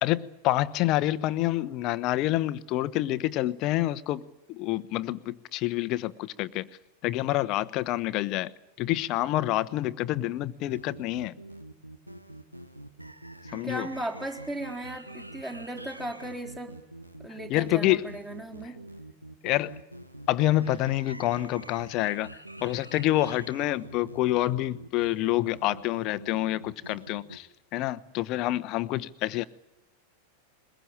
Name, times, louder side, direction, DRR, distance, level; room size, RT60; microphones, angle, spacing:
voice 1, 0.0-4.2 4.5-6.7 7.0-11.3 13.5-13.9 17.5-18.2 19.4-19.8 20.3-22.3 22.6-27.5 27.7-29.4, left 15 dB, 40° left, 0.9 m, -27 dB
sound 1, 10.7-27.4, right 1 dB, 85° right, 1.2 m, -45 dB
voice 2, 13.5-16.7 17.2-18.8, right 1 dB, 10° right, 4.0 m, -36 dB
22.0 x 21.5 x 8.9 m
figure-of-eight pair, 90°, 0 cm